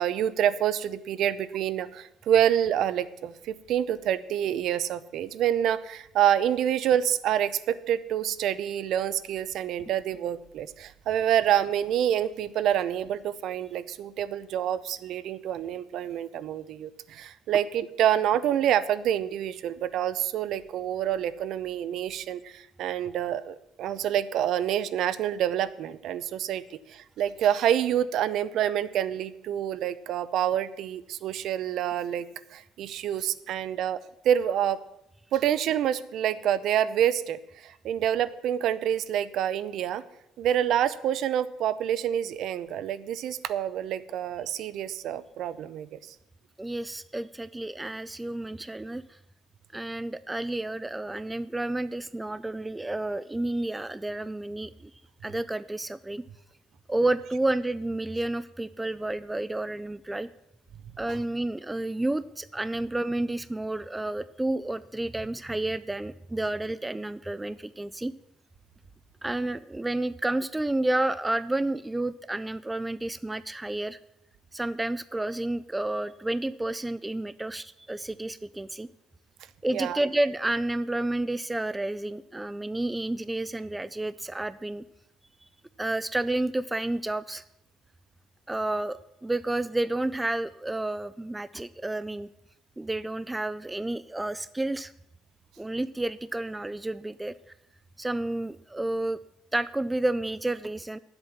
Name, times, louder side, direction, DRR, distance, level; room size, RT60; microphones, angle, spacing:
voice 1, 0.0-32.3 32.5-34.0 34.2-34.8 35.3-40.0 40.4-46.0 61.1-61.2 79.7-80.0, right 10 dB, 60° right, 16 dB, 0.6 m, -27 dB
voice 2, 46.6-49.2 49.7-54.9 55.2-56.2 56.9-60.3 61.0-68.1 69.2-74.0 74.5-78.9 79.6-84.8 85.8-87.4 88.5-92.3 92.8-94.9 95.6-97.3 98.0-99.2 99.5-101.0, right 2 dB, 10° right, 16 dB, 0.3 m, -30 dB
10.5 x 7.9 x 7.2 m, 0.81 s
cardioid pair, 135°, 0 cm